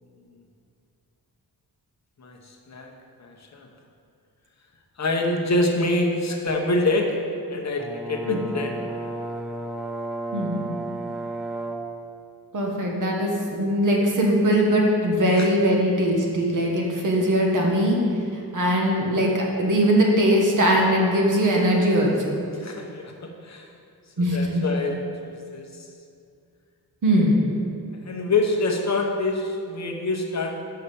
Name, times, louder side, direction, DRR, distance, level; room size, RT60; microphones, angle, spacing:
voice 1, 2.2-2.9 3.2-3.7 5.0-7.1 7.5-8.7 15.2-15.5 22.5-23.7 24.2-25.9 28.0-30.5, left 2 dB, 45° left, 1 dB, 0.9 m, -26 dB
Brass instrument, 7.8-11.9, right 2 dB, ahead, 0.6 m, -32 dB
voice 2, 10.3-10.7 12.5-18.0 18.5-22.4 24.2-24.6 27.0-27.4, equal, 55° right, -1 dB, 1.3 m, -21 dB
5.8 x 5.6 x 6.7 m, 2.3 s
wide cardioid pair, 145°, 37 cm